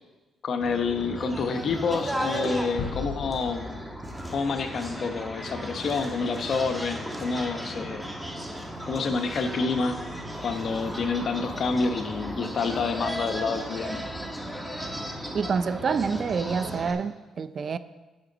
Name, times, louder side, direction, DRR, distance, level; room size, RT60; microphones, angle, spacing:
voice 1, 0.4-3.8 4.3-8.0 8.8-10.0 10.4-14.0, left 4 dB, 55° left, 6 dB, 0.9 m, -28 dB
sound 1, 0.6-16.9, equal, 5° right, 1.4 m, -35 dB
sound 2, 2.8-5.6, left 6 dB, 75° left, 2.7 m, -38 dB
voice 2, 15.3-17.8, right 5 dB, 50° right, 14 dB, 0.4 m, -27 dB
10.5 x 8.5 x 4.0 m, 1.2 s
cardioid pair, 90°, 0 cm